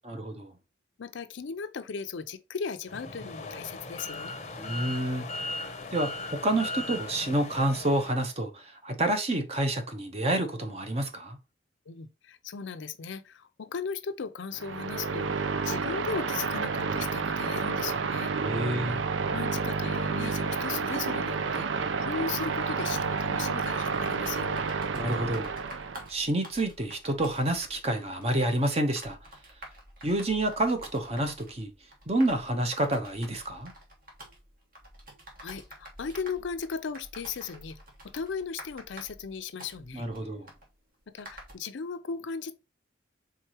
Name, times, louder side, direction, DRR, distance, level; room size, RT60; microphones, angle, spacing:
voice 1, 0.1-0.5 4.6-5.3 5.9-6.1 6.4-11.4 18.4-19.0 24.9-25.5 26.1-29.2 30.0-31.7 32.1-33.7 39.9-40.5, right 1 dB, 35° right, 0.8 m, -28 dB
voice 2, 1.0-4.3 11.9-18.3 19.3-24.6 35.4-37.8 38.1-40.1 41.1-42.5, left 5 dB, 75° left, 0.5 m, -37 dB
sound 1, 2.9-8.1, left 2 dB, 35° left, 0.7 m, -38 dB
sound 2, 14.5-26.1, right 5 dB, 80° right, 0.5 m, -30 dB
sound 3, 22.3-41.5, right 1 dB, 50° right, 1.5 m, -49 dB
4.6 x 3.7 x 2.9 m
head